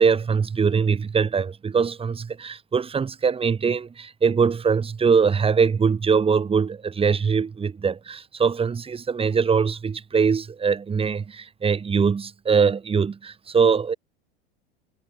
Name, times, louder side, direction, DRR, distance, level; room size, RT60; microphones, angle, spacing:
voice 1, 0.0-13.9, right 6 dB, 20° right, 1.2 m, -22 dB
hypercardioid pair, 80°, 30 cm